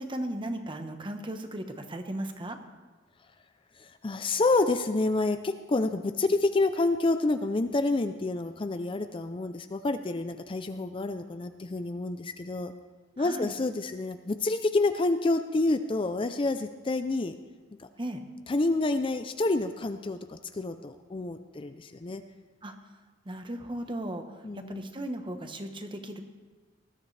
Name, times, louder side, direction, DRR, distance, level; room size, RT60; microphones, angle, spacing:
voice 1, 0.0-2.6 13.2-13.5 18.0-18.2 22.6-22.7 23.2-24.2 24.5-26.2, right 1 dB, 25° right, 6 dB, 1.0 m, -36 dB
voice 2, 3.8-12.7 13.2-17.3 17.8-17.9 18.5-22.2 24.4-24.9, left 2 dB, 25° left, 9 dB, 0.5 m, -28 dB
19.5 x 12.5 x 3.3 m, 1.3 s
head